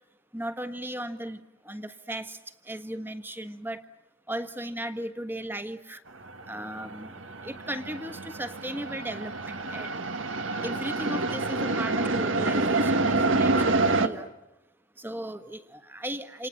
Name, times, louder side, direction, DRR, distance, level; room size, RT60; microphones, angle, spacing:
voice 1, 0.3-3.9 4.3-6.0 6.4-10.1 10.6-14.3 15.0-16.5, right 1 dB, 10° right, 9 dB, 1.4 m, -36 dB
sound 1, 6.3-6.4 6.7-14.1, right 3 dB, 75° right, 1.7 m, -27 dB
29.0 x 27.5 x 7.3 m, 0.97 s
head